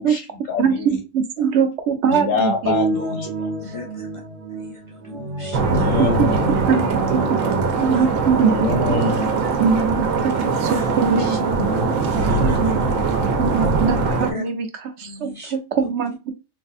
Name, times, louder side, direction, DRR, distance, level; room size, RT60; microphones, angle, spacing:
voice 1, 0.0-1.0 2.1-3.5 5.7-6.6 8.5-9.4 11.6-12.0 13.4-13.5, left 4 dB, 80° left, 1.5 m, -25 dB
voice 2, 0.6-2.8 6.2-6.3 6.7-7.4 7.8-9.1 9.6-12.8 13.4-14.7 15.0-16.3, right 6 dB, 65° right, 0.9 m, -22 dB
sound 1, 2.6-7.6, right 3 dB, 45° right, 0.5 m, -27 dB
voice 3, 3.6-4.2 4.5-6.0 7.8-8.1 8.4-8.5 9.1-9.2 10.7-10.9 11.2-11.4 12.2-12.8 14.2-14.4 15.0-15.6, left 3 dB, 55° left, 0.3 m, -36 dB
sound 2, 5.5-14.3, right 4 dB, 85° right, 1.1 m, -21 dB
3.3 x 3.1 x 2.5 m
omnidirectional pair, 1.3 m